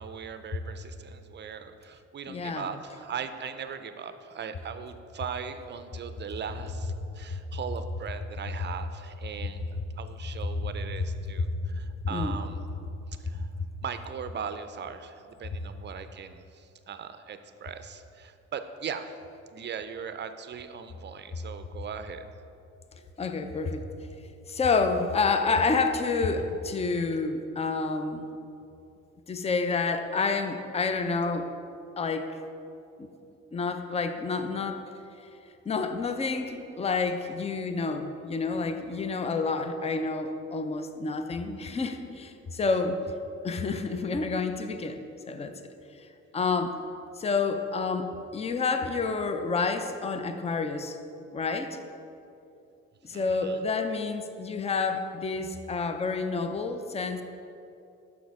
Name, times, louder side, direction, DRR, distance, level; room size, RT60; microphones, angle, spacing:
voice 1, 0.0-12.7 13.2-13.5 13.8-19.2 19.5-22.3 53.1-53.6, right 7 dB, 35° right, 10 dB, 0.5 m, -39 dB
voice 2, 2.3-2.7 7.3-7.4 12.1-12.4 13.3-13.4 23.2-23.8 24.5-28.3 29.3-31.5 32.0-32.3 33.0-33.1 33.5-34.8 35.7-43.0 43.4-45.0 45.3-45.5 46.3-46.8 47.2-51.0 51.3-51.8 53.0-57.2, left 4 dB, 20° left, 7 dB, 0.5 m, -29 dB
6.3 x 5.9 x 4.7 m, 2.7 s
cardioid pair, 90°, 30 cm